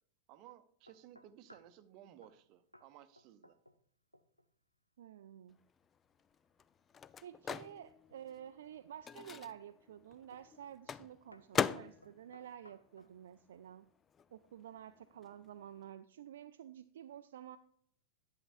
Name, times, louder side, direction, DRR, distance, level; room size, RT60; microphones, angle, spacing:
voice 1, 0.3-3.6, right 12 dB, 40° right, 12 dB, 0.7 m, -58 dB
sound 1, 0.9-1.8 2.2-2.4 2.7-2.9 3.2-3.9 4.1-4.5 7.9-8.5 9.1-9.5 10.3-10.6 10.8-11.0 11.3-13.2, equal, 90° left, 0.5 m, -62 dB
voice 2, 5.0-5.6 7.2-13.9 14.3-17.6, right 10 dB, 60° right, 10 dB, 0.3 m, -51 dB
Microwave oven, 5.6-13.7 14.0-15.9, left 7 dB, 20° left, 0.3 m, -42 dB
11.0 x 9.2 x 2.5 m, 0.64 s
figure-of-eight pair, 90°, 0 cm